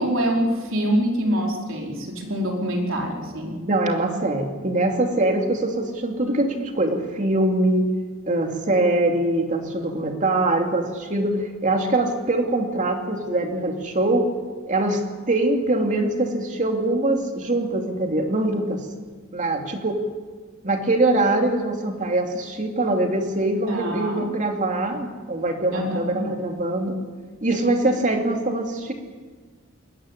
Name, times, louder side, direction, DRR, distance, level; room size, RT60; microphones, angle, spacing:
voice 1, 0.0-3.6 23.7-24.3 25.7-26.2, equal, 65° right, 0 dB, 4.6 m, -25 dB
voice 2, 3.7-7.9 8.3-14.3 14.7-15.0 15.3-18.8 19.3-20.0 20.6-27.0 27.4-28.9, right 2 dB, 35° right, 3 dB, 2.7 m, -23 dB
22.0 x 17.5 x 9.9 m, 1.5 s
head